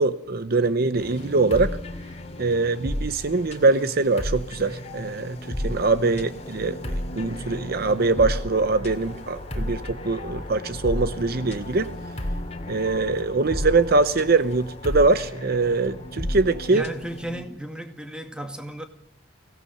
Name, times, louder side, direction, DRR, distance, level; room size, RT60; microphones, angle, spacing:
voice 1, 0.0-1.8 2.4-11.9 12.7-16.8, right 3 dB, 55° right, 0.8 m, -23 dB
sound 1, 0.9-17.4, left 1 dB, 35° left, 2.3 m, -33 dB
voice 2, 16.7-18.8, right 1 dB, 5° right, 2.1 m, -34 dB
24.0 x 17.0 x 6.8 m
head